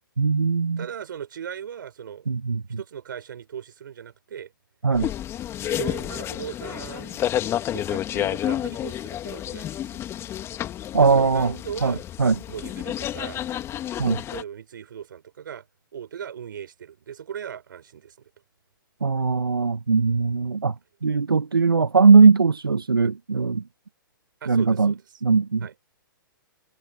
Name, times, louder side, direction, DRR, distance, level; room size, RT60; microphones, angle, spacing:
voice 1, 0.2-0.8 2.3-2.8 4.8-5.1 10.9-11.5 11.8-12.3 14.0-14.2 19.0-20.7 21.0-23.6 24.5-24.9 25.2-25.7, right 4 dB, 90° right, 1.0 m, -19 dB
voice 2, 0.8-2.3 2.8-4.5 5.6-7.2 7.7-10.0 11.0-12.0 12.4-13.4 14.3-15.6 15.9-18.3 24.4-25.0 25.6-25.7, right 8 dB, 65° right, 5.2 m, -38 dB
sound 1, 4.9-14.4, left 11 dB, 20° left, 2.2 m, -30 dB
hypercardioid pair, 125°, 12 cm